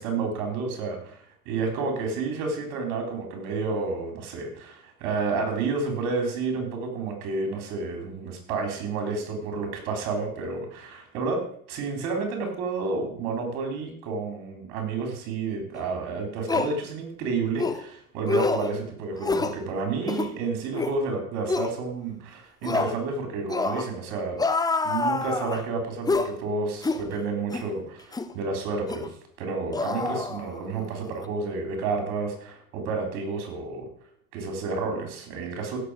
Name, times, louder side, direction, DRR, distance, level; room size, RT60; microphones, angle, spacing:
voice 1, 0.0-11.4 11.7-24.4 24.8-29.1 29.4-33.8 34.3-35.8, right 4 dB, 55° right, 4 dB, 4.1 m, -30 dB
sound 1, 15.8-15.9 16.5-16.7 17.6-17.8 18.3-18.7 19.2-19.6 20.0-20.3 20.7-21.0 21.5-21.7 22.6-23.0 23.5-23.9 24.4-25.6 26.1-26.3 26.8-27.0 27.5-27.7 28.1-28.3 28.9-29.1 29.7-30.8 31.1-31.3, left 3 dB, 10° left, 0.7 m, -27 dB
16.0 x 6.9 x 5.0 m, 0.62 s
figure-of-eight pair, 75°, 46 cm